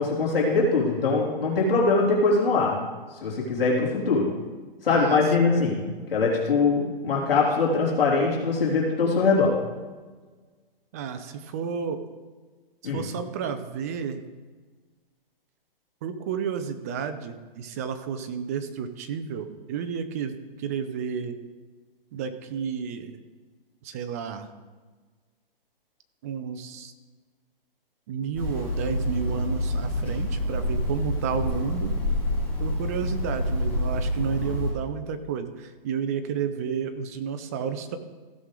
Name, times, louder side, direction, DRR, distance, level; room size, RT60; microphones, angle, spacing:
voice 1, 0.0-2.8 3.2-4.3 4.8-5.8 6.1-9.5 12.8-13.0, left 3 dB, 75° left, -4 dB, 3.2 m, -22 dB
voice 2, 4.9-5.2 10.9-12.0 12.8-14.2 16.0-21.4 22.1-23.2 23.8-24.5 26.2-26.9 28.1-32.0 32.6-38.0, right 7 dB, 15° right, 9 dB, 0.4 m, -31 dB
Hammer, 28.3-34.7, left 1 dB, 5° left, 2.9 m, -27 dB
15.5 x 6.3 x 3.8 m, 1.4 s
hypercardioid pair, 150°, 29 cm